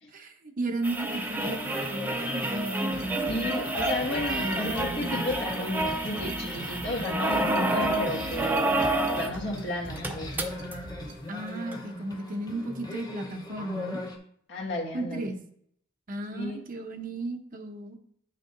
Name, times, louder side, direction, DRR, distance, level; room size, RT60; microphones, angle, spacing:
voice 1, 0.1-3.6 4.4-4.6 11.3-14.0 14.9-15.4 16.1-18.0, right 2 dB, 45° right, 5 dB, 0.7 m, -34 dB
sound 1, 0.8-9.4 9.7-9.8 10.0-10.7 11.7-11.8, right 1 dB, 10° right, 0.6 m, -29 dB
sound 2, 1.1-14.2, left 1 dB, 20° left, 0.9 m, -39 dB
sound 3, 2.9-11.1, right 1 dB, 75° right, 1.3 m, -44 dB
voice 2, 3.3-8.7 9.1-10.3 14.5-15.3 16.3-16.6, left 1 dB, 65° left, -2 dB, 1.7 m, -33 dB
8.6 x 6.5 x 2.6 m, 0.67 s
head